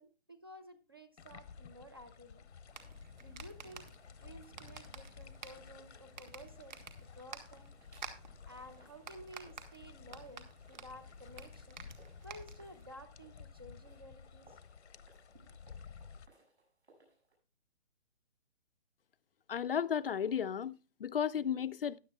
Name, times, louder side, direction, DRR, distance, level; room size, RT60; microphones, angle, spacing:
voice 1, 0.0-2.5 3.2-3.9 4.2-6.8 7.1-7.8 8.5-11.8 12.2-14.6 15.3-15.6, equal, 20° right, 0.5 m, -53 dB
sound 1, 1.2-16.3, left 6 dB, 85° left, 0.9 m, -54 dB
sound 2, 2.6-12.9, right 6 dB, 45° right, 1.6 m, -52 dB
sound 3, 6.4-7.5 7.8-17.4, right 2 dB, 90° right, 6.7 m, -69 dB
voice 2, 19.5-22.0, left 8 dB, 60° left, 0.5 m, -34 dB
14.5 x 10.5 x 2.3 m
hypercardioid pair, 170°, 33 cm